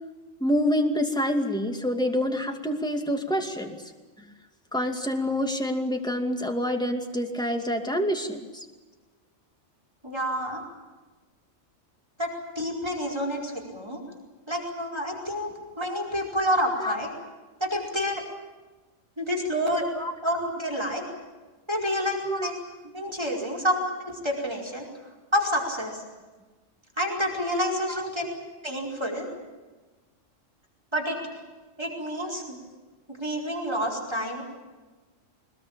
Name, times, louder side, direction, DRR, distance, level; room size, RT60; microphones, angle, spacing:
voice 1, 0.4-3.8 4.7-8.5 16.8-16.9 20.0-20.1 22.2-22.5 23.4-23.5 27.9-28.1 29.2-29.3, equal, 5° left, 4 dB, 2.4 m, -27 dB
voice 2, 10.0-10.6 12.2-14.0 14.5-17.1 17.6-18.2 19.2-19.9 20.2-21.0 21.7-22.5 22.9-24.9 25.3-26.0 27.0-28.3 28.6-29.3 30.9-31.2 31.8-32.6 33.2-34.4, equal, 20° right, 0 dB, 5.0 m, -28 dB
23.0 x 21.5 x 8.9 m, 1.2 s
omnidirectional pair, 1.4 m